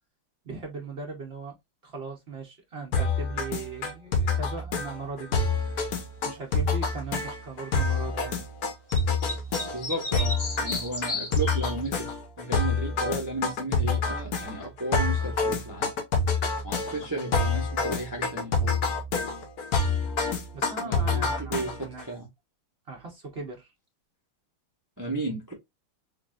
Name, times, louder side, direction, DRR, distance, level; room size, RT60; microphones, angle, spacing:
voice 1, 0.4-5.4 6.2-8.4 20.5-22.1 22.9-23.7, right 4 dB, 70° right, 0.6 m, -39 dB
sound 1, 2.9-22.0, left 3 dB, 60° left, 1.1 m, -27 dB
sound 2, 8.9-12.0, left 2 dB, 25° left, 0.9 m, -33 dB
voice 2, 9.7-12.1 12.4-15.9 16.6-18.8 20.8-22.3 25.0-25.5, right 2 dB, 15° right, 0.6 m, -34 dB
3.9 x 3.2 x 2.4 m
omnidirectional pair, 2.2 m